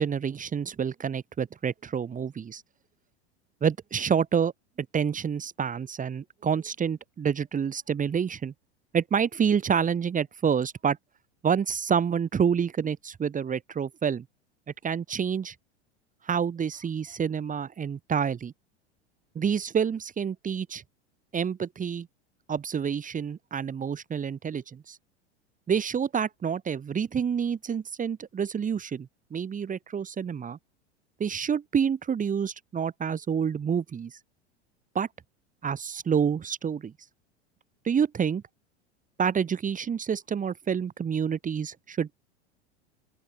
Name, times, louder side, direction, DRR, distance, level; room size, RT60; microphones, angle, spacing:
voice 1, 0.0-2.6 3.6-4.5 4.8-8.5 8.9-11.0 11.4-14.2 14.8-15.6 16.2-18.5 19.4-20.8 21.3-22.1 22.5-25.0 25.7-30.6 31.2-34.2 35.0-35.1 35.6-36.9 37.9-38.4 39.2-42.2, right 7 dB, 25° right, 5.1 m, -28 dB
open air
figure-of-eight pair, 85°, 34 cm